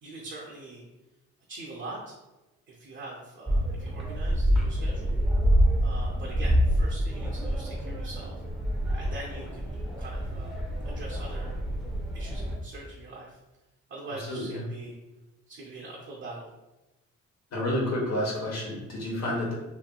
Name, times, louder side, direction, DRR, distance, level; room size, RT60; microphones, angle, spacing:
voice 1, 0.0-0.8 1.5-2.2 2.7-5.1 5.8-8.4 8.9-9.6 10.0-10.6 10.8-11.6 12.1-13.4 13.9-15.0 15.5-16.5 19.2-19.4, right 2 dB, 45° right, -3 dB, 0.6 m, -43 dB
sound 1, 3.5-12.6, equal, ahead, 0.7 m, -27 dB
voice 2, 14.3-14.6 17.5-19.5, left 1 dB, 60° left, -3 dB, 1.1 m, -29 dB
2.9 x 2.7 x 2.2 m, 1.0 s
cardioid pair, 90°, 30 cm